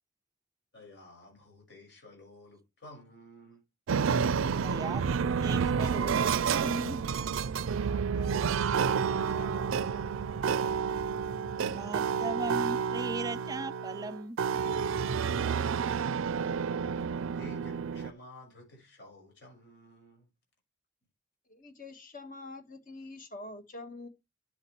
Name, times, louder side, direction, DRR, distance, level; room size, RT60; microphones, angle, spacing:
voice 1, 0.7-3.6 7.7-10.8 15.4-15.9 16.9-17.0 17.3-20.3, equal, 60° left, 5.7 m, -52 dB
sound 1, 3.9-18.1, right 6 dB, 90° right, 0.4 m, -30 dB
voice 2, 4.6-7.0 11.7-14.4, right 2 dB, 20° right, 0.4 m, -38 dB
voice 3, 21.5-24.1, left 2 dB, 40° left, 1.6 m, -45 dB
11.5 x 6.6 x 3.1 m
head